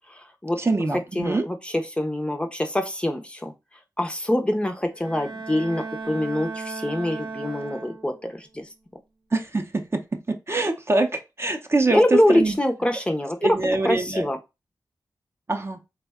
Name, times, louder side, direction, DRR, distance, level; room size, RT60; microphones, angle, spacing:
voice 1, 0.6-1.4 9.3-12.6 13.4-14.3 15.5-15.8, right 2 dB, 35° right, 0.5 m, -24 dB
voice 2, 1.2-1.6 2.0-3.5 4.0-8.7 11.9-13.6 13.8-14.4, left 1 dB, 15° left, 0.5 m, -24 dB
Bowed string instrument, 4.9-8.3, right 4 dB, 85° right, 0.6 m, -36 dB
3.4 x 2.1 x 3.4 m
wide cardioid pair, 75°, 8 cm